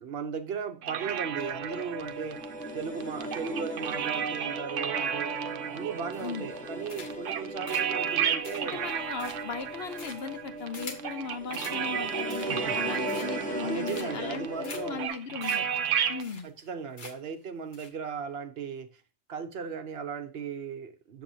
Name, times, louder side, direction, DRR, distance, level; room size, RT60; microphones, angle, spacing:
voice 1, 0.0-5.4 5.7-8.8 12.4-12.9 13.6-15.0 16.4-19.0 19.3-21.2, right 6 dB, 60° right, 0.9 m, -37 dB
sound 1, 0.8-16.2, right 8 dB, 85° right, 1.0 m, -33 dB
sound 2, 1.3-15.1, equal, 5° left, 0.9 m, -38 dB
sound 3, 6.1-6.5 6.9-7.3 7.7-11.1 11.5-11.8 12.2-12.7 13.1-13.5 13.9-14.3 14.6-14.8 15.1-15.2 15.4-15.6 15.9-16.0 16.2-16.7 17.0-17.3 17.7-17.9, left 3 dB, 45° left, 1.2 m, -45 dB
voice 2, 8.7-15.7 16.1-16.5, left 5 dB, 60° left, 0.9 m, -37 dB
7.5 x 7.5 x 2.7 m
omnidirectional pair, 1.2 m